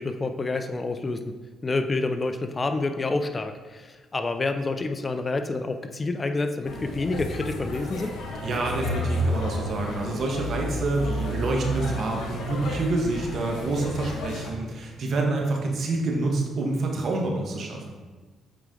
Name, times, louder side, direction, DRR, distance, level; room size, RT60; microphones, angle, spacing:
voice 1, 0.0-1.3 1.6-8.1, left 3 dB, 30° left, 7 dB, 0.5 m, -28 dB
sound 1, 6.6-14.5, left 1 dB, 80° left, 1.5 m, -31 dB
voice 2, 8.4-17.9, right 2 dB, 60° right, 1 dB, 1.4 m, -27 dB
8.0 x 4.7 x 3.8 m, 1.3 s
cardioid pair, 90°, 0 cm